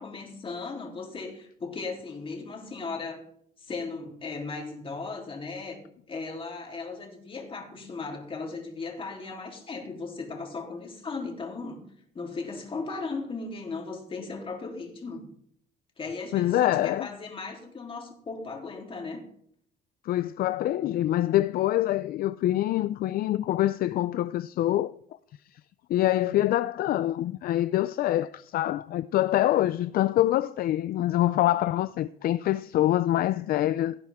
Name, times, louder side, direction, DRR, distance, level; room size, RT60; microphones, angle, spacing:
voice 1, 0.0-3.2 3.6-5.8 6.1-11.8 12.1-15.3 16.0-19.2, left 4 dB, 30° left, 3.4 m, -37 dB
voice 2, 16.3-17.1 20.0-24.9 25.9-34.0, left 14 dB, 60° left, 0.5 m, -25 dB
17.0 x 9.3 x 3.6 m
cardioid pair, 110°, 17 cm